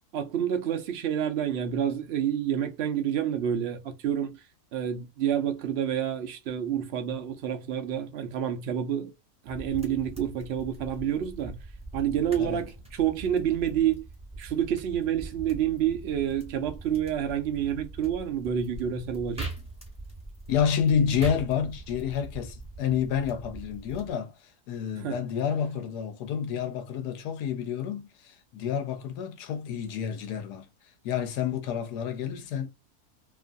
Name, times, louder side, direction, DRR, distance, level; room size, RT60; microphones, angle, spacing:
voice 1, 0.1-4.4 4.7-9.1 9.4-11.6 11.9-14.0 14.4-19.5 25.0-25.2, right 9 dB, 60° right, 0.6 m, -28 dB
sound 1, 9.5-24.1, right 2 dB, 5° right, 0.6 m, -42 dB
voice 2, 20.5-24.3 24.7-30.7 31.0-32.7, left 8 dB, 85° left, 1.2 m, -29 dB
2.9 x 2.4 x 2.4 m
omnidirectional pair, 1.7 m